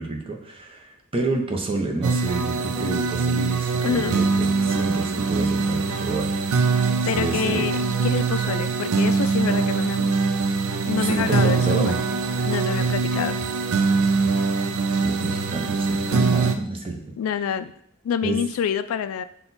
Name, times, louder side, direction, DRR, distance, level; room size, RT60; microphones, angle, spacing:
voice 1, 0.0-6.3 7.0-7.6 11.0-12.0 15.0-17.0 18.2-18.4, right 3 dB, 25° right, 2 dB, 0.6 m, -28 dB
sound 1, 2.0-16.5, right 4 dB, 85° right, 0.4 m, -23 dB
voice 2, 3.8-4.2 7.1-10.2 10.9-11.9 12.4-13.4 17.2-17.7 18.0-19.2, left 7 dB, 75° left, 13 dB, 0.3 m, -27 dB
5.9 x 2.3 x 4.0 m, 0.68 s
head